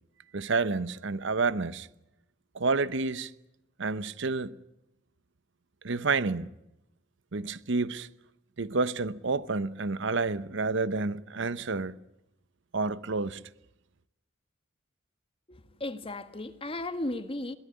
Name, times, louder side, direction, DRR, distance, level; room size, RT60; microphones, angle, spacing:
voice 1, 0.3-1.9 2.5-3.3 3.8-4.6 5.8-6.5 7.3-8.1 8.6-12.0 12.7-13.4, right 4 dB, 65° right, 0.9 m, -29 dB
voice 2, 15.5-17.6, left 1 dB, 30° left, 1.5 m, -35 dB
22.5 x 17.5 x 10.0 m
head